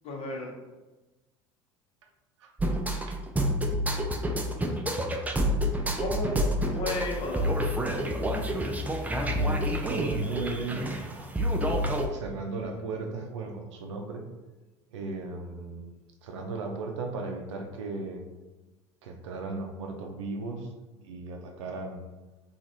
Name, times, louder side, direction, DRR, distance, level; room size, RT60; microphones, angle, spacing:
voice 1, 0.0-0.5 6.0-7.5, left 2 dB, 45° left, -1 dB, 0.8 m, -33 dB
sound 1, 2.6-12.1, equal, 10° right, 0.4 m, -28 dB
voice 2, 9.2-11.2 12.1-14.3 14.9-15.9 16.2-18.2 19.0-20.7 21.0-22.0, right 3 dB, 80° right, 3 dB, 0.5 m, -36 dB
2.9 x 2.4 x 2.6 m, 1.2 s
hypercardioid pair, 75°, 15 cm